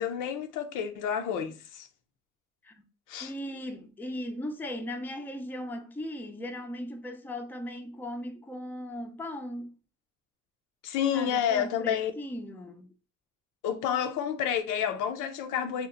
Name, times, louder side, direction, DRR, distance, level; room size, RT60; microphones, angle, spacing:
voice 1, 0.0-1.9 3.1-3.3 10.8-12.1 13.6-15.9, left 8 dB, 85° left, 0.5 m, -29 dB
voice 2, 3.2-9.8 11.1-12.9, left 1 dB, 5° left, 0.4 m, -38 dB
2.8 x 2.0 x 2.4 m
cardioid pair, 90°, 30 cm